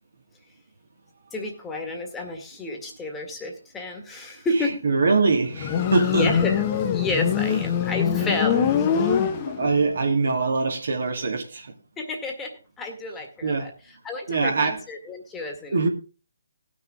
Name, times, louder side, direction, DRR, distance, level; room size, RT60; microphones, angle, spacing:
voice 1, 1.3-4.8 6.1-6.6 6.9-9.1 12.0-13.7 14.0-15.8, left 2 dB, 10° left, 1.9 m, -30 dB
voice 2, 4.8-6.3 7.5-7.7 8.1-8.3 9.4-11.7 13.4-13.7 14.3-14.8 15.7-15.9, right 4 dB, 65° right, 2.3 m, -23 dB
Motorcycle, 5.5-9.9, left 8 dB, 25° left, 1.2 m, -23 dB
19.0 x 6.4 x 3.7 m
figure-of-eight pair, 145°, 0 cm